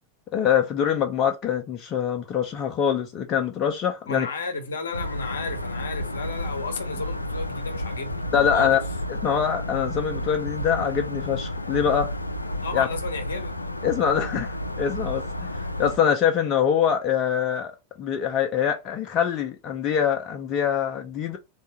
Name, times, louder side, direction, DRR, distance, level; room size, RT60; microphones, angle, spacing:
voice 1, 0.3-4.3 8.3-8.8 9.1-12.1 12.7-12.9 13.8-15.5 15.8-17.7 18.0-21.4, left 8 dB, 35° left, 0.6 m, -24 dB
voice 2, 4.1-8.2 8.5-8.8 12.6-13.5, left 4 dB, 65° left, 0.8 m, -33 dB
sound 1, 4.9-16.0, left 1 dB, 85° left, 0.4 m, -31 dB
3.5 x 2.4 x 4.1 m
figure-of-eight pair, 90°, 0 cm